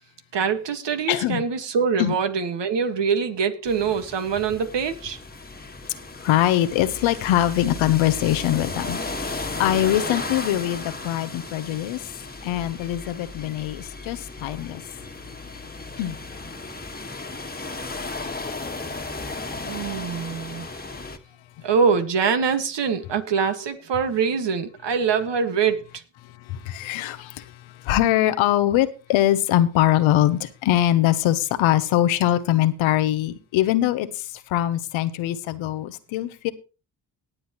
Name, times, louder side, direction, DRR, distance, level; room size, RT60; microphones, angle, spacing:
voice 1, 0.3-5.2 19.6-20.7 21.6-25.9, right 6 dB, 65° right, 1.8 m, -24 dB
voice 2, 1.1-1.4 2.0-2.1 6.2-12.0 12.4-14.8 16.0-16.2 21.6-21.7 26.2-36.5, left 13 dB, 85° left, 0.9 m, -23 dB
sound 1, 3.7-21.2, left 3 dB, 20° left, 1.6 m, -35 dB
18.5 x 7.8 x 3.0 m
supercardioid pair, 50°, 46 cm